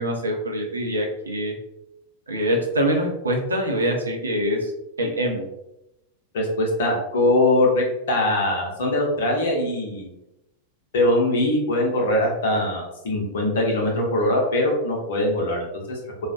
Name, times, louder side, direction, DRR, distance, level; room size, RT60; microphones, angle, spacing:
voice 1, 0.0-1.5 2.3-4.7 5.0-5.4, equal, 75° right, 1 dB, 0.5 m, -24 dB
voice 2, 6.3-10.1 10.9-16.0, left 1 dB, 60° left, -1 dB, 0.7 m, -22 dB
2.4 x 2.1 x 2.4 m, 0.89 s
figure-of-eight pair, 90°, 0 cm